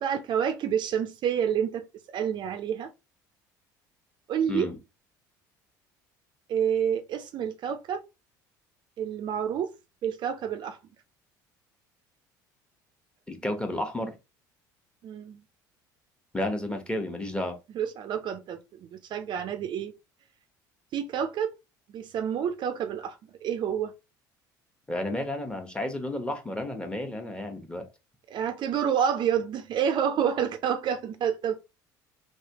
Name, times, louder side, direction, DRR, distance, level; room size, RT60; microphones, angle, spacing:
voice 1, 0.0-2.9 4.3-4.7 6.5-8.0 9.0-9.7 10.0-10.8 15.0-15.4 17.7-19.9 20.9-21.5 21.9-23.9 28.3-31.6, right 8 dB, 50° right, 0.5 m, -28 dB
voice 2, 13.3-14.1 16.3-17.6 24.9-27.8, left 1 dB, 10° left, 1.0 m, -32 dB
3.2 x 2.9 x 2.8 m
hypercardioid pair, 70°, 10 cm